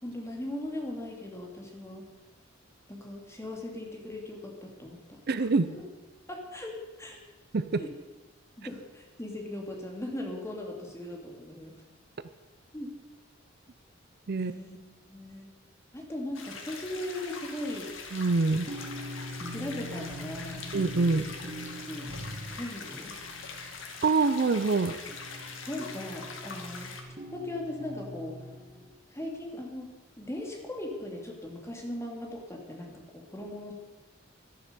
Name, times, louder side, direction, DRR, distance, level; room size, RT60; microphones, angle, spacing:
voice 1, 0.0-2.1 2.9-5.2 5.7-5.8 6.3-7.2 7.8-7.9 8.6-11.8 12.7-12.9 14.4-14.8 15.1-15.5 15.9-17.9 19.4-20.6 21.9-22.1 22.5-23.1 25.7-26.9 27.3-28.4 29.1-29.9 30.2-33.7, left 1 dB, 15° left, 0 dB, 2.7 m, -38 dB
voice 2, 5.3-5.7 7.5-7.8 14.3-14.5 18.1-18.7 20.7-21.2 24.0-25.0, right 3 dB, 55° right, 12 dB, 0.6 m, -25 dB
sound 1, 16.3-27.0, left 4 dB, 75° left, 2.0 m, -43 dB
sound 2, 18.0-24.1 25.1-28.9, equal, 30° right, 1.8 m, -42 dB
12.5 x 11.0 x 6.9 m, 1.2 s
head